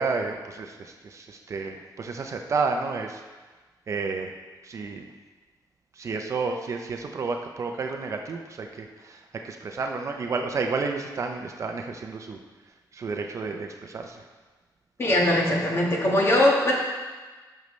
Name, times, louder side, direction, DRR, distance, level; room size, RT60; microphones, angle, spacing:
voice 1, 0.0-3.2 3.9-4.3 4.6-5.1 5.9-12.4 12.9-14.2, right 4 dB, 40° right, 4 dB, 0.6 m, -31 dB
voice 2, 15.0-16.7, left 1 dB, 35° left, -2 dB, 1.5 m, -21 dB
12.0 x 6.4 x 3.2 m, 1.3 s
wide cardioid pair, 180°, 8 cm